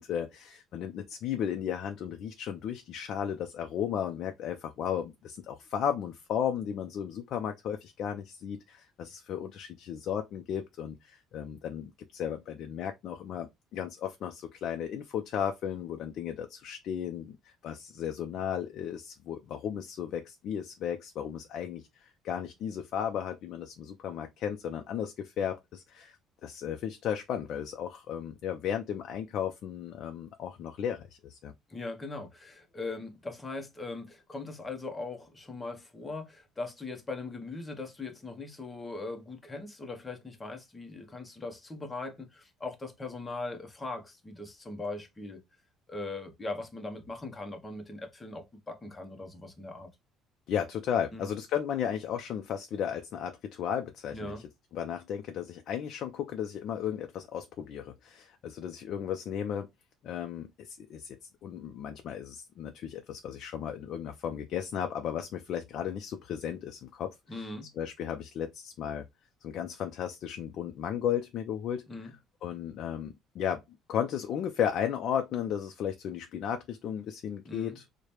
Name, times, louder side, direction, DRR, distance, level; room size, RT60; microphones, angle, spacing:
voice 1, 0.0-26.2 26.4-31.5 50.5-54.3 54.7-59.7 60.0-67.1 67.8-69.0 69.4-71.8 72.4-73.6 73.9-77.8, left 9 dB, 50° left, 0.4 m, -35 dB
voice 2, 31.7-45.4 45.9-49.9 51.1-51.3 54.1-54.5 67.3-67.7 71.9-72.2 77.4-77.8, left 3 dB, 15° left, 0.7 m, -40 dB
4.8 x 2.1 x 2.9 m
cardioid pair, 155°, 0 cm